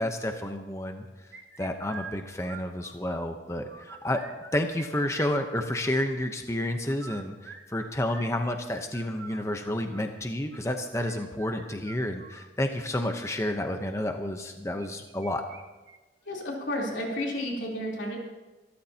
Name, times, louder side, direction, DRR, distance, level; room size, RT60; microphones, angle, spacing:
voice 1, 0.0-1.3 1.6-4.2 4.5-15.4, left 1 dB, 15° left, 5 dB, 0.8 m, -30 dB
sound 1, 1.3-3.2 3.5-4.9 5.1-6.1 6.8-12.5 13.2-13.5 14.8-15.6 15.9-16.0 16.4-16.5 17.1-17.5, right 6 dB, 70° right, 1.6 m, -46 dB
voice 2, 16.3-18.2, left 1 dB, 80° left, -3 dB, 3.5 m, -31 dB
25.5 x 13.0 x 2.9 m, 1.2 s
head